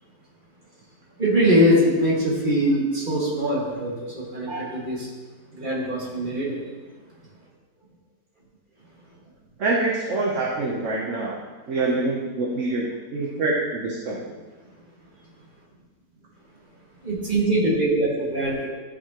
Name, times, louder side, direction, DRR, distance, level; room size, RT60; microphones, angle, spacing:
voice 1, 1.2-5.1 5.5-6.6 17.0-18.7, equal, 30° right, -5 dB, 2.1 m, -22 dB
voice 2, 9.6-11.4 11.7-12.8 13.1-14.2, right 2 dB, 50° right, -3 dB, 1.2 m, -25 dB
13.5 x 5.3 x 3.0 m, 1.4 s
omnidirectional pair, 1.9 m